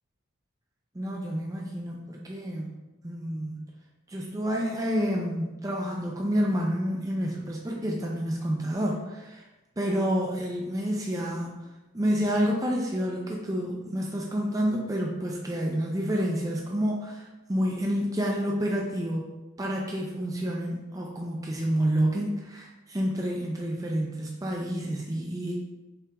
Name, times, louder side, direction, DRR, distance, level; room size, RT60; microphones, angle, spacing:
voice 1, 0.9-2.8 3.0-3.6 4.1-9.4 9.8-11.6 11.9-25.6, equal, 15° right, -2 dB, 0.4 m, -29 dB
5.6 x 2.5 x 3.4 m, 1.1 s
head